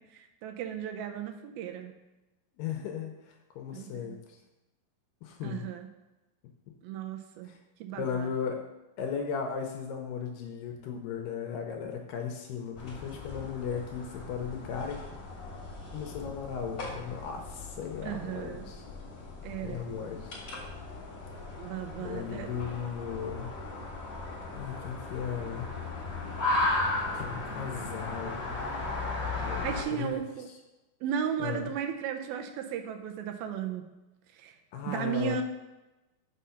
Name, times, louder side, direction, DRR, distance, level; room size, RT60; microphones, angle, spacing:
voice 1, 0.1-1.9 3.7-4.2 5.4-5.9 6.8-7.5 7.8-8.3 18.0-18.7 19.4-19.8 21.6-22.6 29.6-30.5 31.0-33.8 34.3-34.6 34.9-35.4, right 8 dB, 80° right, 5 dB, 2.5 m, -35 dB
voice 2, 2.6-4.2 5.2-5.7 7.5-7.6 7.9-8.6 9.0-15.0 15.9-18.8 19.6-20.4 22.0-23.5 24.5-25.7 27.1-28.4 29.4-29.7 29.9-30.2 31.4-31.7 34.7-35.4, left 7 dB, 75° left, 3 dB, 2.2 m, -36 dB
sound 1, 12.8-29.8, left 2 dB, 35° left, 1.5 m, -36 dB
6.3 x 5.6 x 5.6 m, 1.0 s
omnidirectional pair, 4.4 m